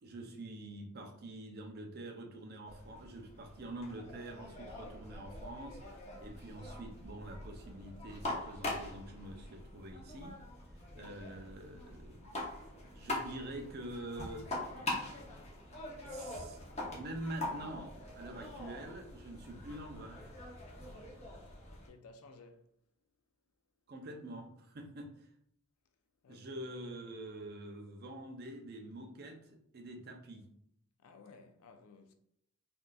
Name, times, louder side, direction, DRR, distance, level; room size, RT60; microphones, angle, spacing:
voice 1, 0.0-5.8 6.2-10.4 11.0-12.5 12.9-14.5 16.0-16.6 16.9-20.2 23.9-25.3 26.3-29.4 29.7-30.5, right 1 dB, 45° right, 0.5 m, -46 dB
sound 1, 2.7-21.9, left 2 dB, 30° left, 0.7 m, -44 dB
voice 2, 21.4-22.7 26.2-26.6 31.0-32.1, left 3 dB, 85° left, 0.4 m, -57 dB
3.6 x 2.5 x 2.3 m
head